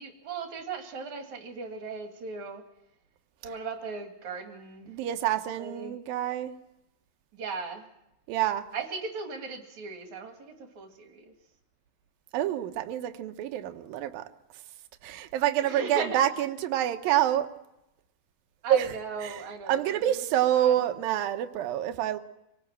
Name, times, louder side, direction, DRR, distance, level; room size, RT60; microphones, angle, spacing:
voice 1, 0.0-2.6 3.4-5.0 5.3-6.0 7.3-7.9 8.7-11.3 15.6-16.2 18.6-20.2 20.5-20.7, right 4 dB, 55° right, 3.4 m, -38 dB
voice 2, 4.9-6.5 8.3-8.7 12.3-14.3 15.0-17.5 18.7-18.9 19.2-22.2, right 11 dB, 75° right, 2.8 m, -27 dB
26.5 x 18.5 x 7.5 m
omnidirectional pair, 4.2 m